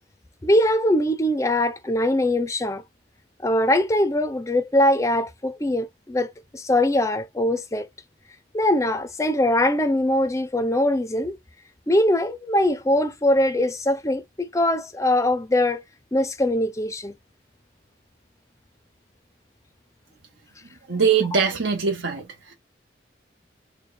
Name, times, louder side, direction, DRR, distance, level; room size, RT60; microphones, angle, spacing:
voice 1, 0.4-2.8 3.4-7.9 8.5-11.4 11.9-15.8 16.1-17.1, left 1 dB, 15° left, 0.4 m, -22 dB
voice 2, 20.9-22.2, right 6 dB, 75° right, 0.9 m, -21 dB
4.3 x 2.2 x 3.2 m
head